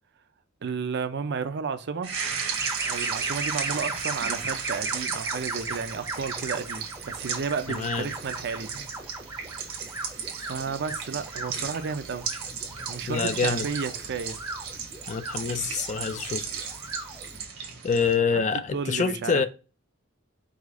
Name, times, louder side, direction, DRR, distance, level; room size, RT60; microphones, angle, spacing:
voice 1, 0.6-2.1 2.8-8.8 10.4-12.3 12.9-14.4 18.7-19.5, right 5 dB, 55° right, 0.5 m, -32 dB
sound 1, 2.0-18.1, right 6 dB, 75° right, 1.0 m, -35 dB
sound 2, 2.5-17.4, right 2 dB, 15° right, 0.6 m, -37 dB
voice 2, 7.7-8.1 13.1-13.7 15.1-16.4 17.8-19.5, left 5 dB, 35° left, 0.3 m, -26 dB
4.9 x 2.4 x 3.6 m
head